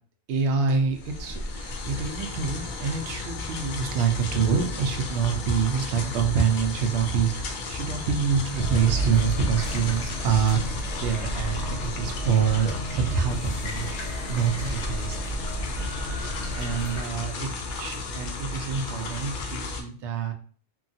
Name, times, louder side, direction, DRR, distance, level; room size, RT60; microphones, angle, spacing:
voice 1, 0.3-13.9 14.3-15.2 16.1-20.3, right 6 dB, 80° right, 4 dB, 0.9 m, -26 dB
sound 1, 0.7-19.8, left 3 dB, 60° left, 0.6 m, -34 dB
sound 2, 8.6-17.0, equal, 80° left, 1.0 m, -33 dB
3.0 x 2.3 x 2.6 m, 0.43 s
omnidirectional pair, 1.2 m